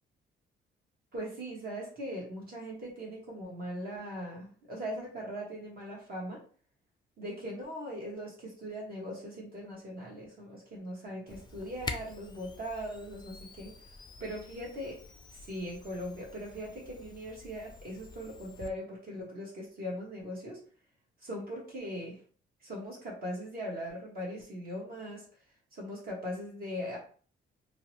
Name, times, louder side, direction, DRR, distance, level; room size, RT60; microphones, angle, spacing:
voice 1, 1.1-6.4 7.2-13.7 14.2-15.0 15.3-20.6 21.2-22.2 22.6-25.2 25.7-27.0, equal, 50° right, -3 dB, 1.1 m, -40 dB
Camera, 11.3-18.7, left 3 dB, 20° left, 0.4 m, -46 dB
2.6 x 2.0 x 3.0 m, 0.43 s
cardioid pair, 90°, 20 cm